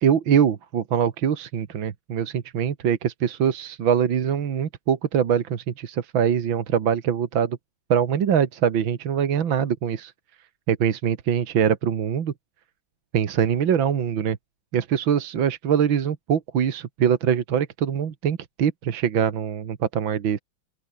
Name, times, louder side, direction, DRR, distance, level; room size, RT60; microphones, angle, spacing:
voice 1, 0.0-7.6 7.9-10.1 10.7-12.3 13.1-14.4 14.7-20.4, right 8 dB, 70° right, 2.3 m, -23 dB
open air
omnidirectional pair, 2.2 m